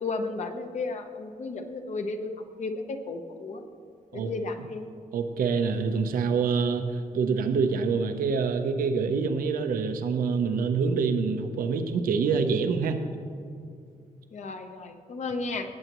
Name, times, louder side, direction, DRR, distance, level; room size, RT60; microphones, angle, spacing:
voice 1, 0.0-2.3 2.6-3.6 4.1-4.9 14.3-15.7, left 3 dB, 55° left, 6 dB, 0.9 m, -33 dB
voice 2, 5.1-13.0, right 5 dB, 85° right, 7 dB, 0.8 m, -26 dB
17.5 x 8.0 x 3.0 m, 2.4 s
wide cardioid pair, 135°, 14 cm